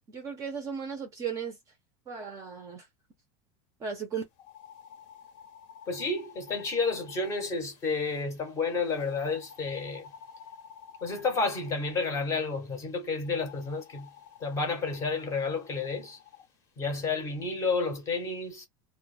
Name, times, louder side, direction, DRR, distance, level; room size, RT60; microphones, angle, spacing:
voice 1, 0.1-1.6 2.1-2.9 3.8-4.2, right 6 dB, 20° right, 0.5 m, -36 dB
sound 1, 4.3-8.2 8.9-12.2 13.2-16.5, left 8 dB, 70° left, 0.8 m, -52 dB
voice 2, 5.9-10.1 11.0-14.1 14.4-16.2 16.8-18.7, left 4 dB, 20° left, 0.7 m, -31 dB
2.1 x 2.0 x 3.1 m
supercardioid pair, 175°, 16 cm